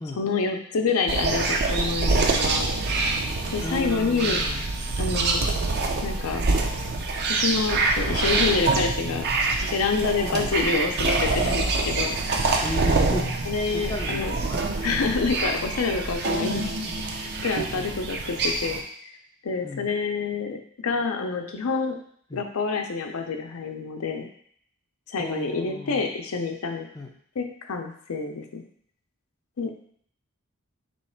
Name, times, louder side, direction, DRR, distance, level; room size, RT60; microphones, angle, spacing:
voice 1, 0.2-2.7 3.5-4.4 5.0-5.4 6.0-6.4 7.3-9.2 9.7-12.2 13.5-14.3 14.8-18.8 19.4-20.6 20.8-22.0 22.3-24.3 25.1-26.9 27.4-28.6 29.6-29.7, left 4 dB, 90° left, 4 dB, 0.6 m, -27 dB
sound 1, 1.1-18.8, right 3 dB, 50° right, 0.5 m, -25 dB
voice 2, 3.6-4.6 10.3-10.5 12.6-14.4 16.5-16.7 17.7-17.9 19.6-19.9 22.3-22.4 25.2-26.1 26.9-27.1, left 1 dB, 20° left, 2 dB, 0.4 m, -34 dB
3.2 x 3.0 x 4.3 m, 0.62 s
head